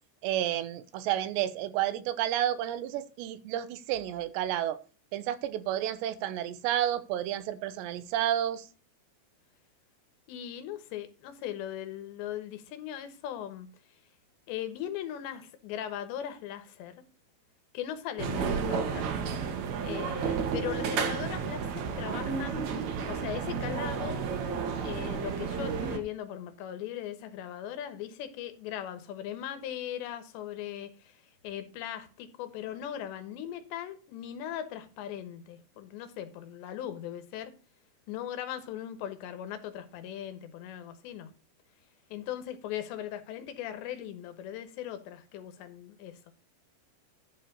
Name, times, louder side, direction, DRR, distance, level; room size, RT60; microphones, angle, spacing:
voice 1, 0.2-4.8 5.1-8.7, right 12 dB, 80° right, 3.0 m, -31 dB
voice 2, 10.3-13.7 14.5-17.0 17.7-19.1 19.8-22.8 23.1-24.2 24.8-37.5 38.1-41.3 42.1-46.3, left 10 dB, 80° left, 3.4 m, -39 dB
sound 1, 18.2-26.0, right 6 dB, 65° right, 1.9 m, -32 dB
11.5 x 4.5 x 6.6 m
omnidirectional pair, 5.0 m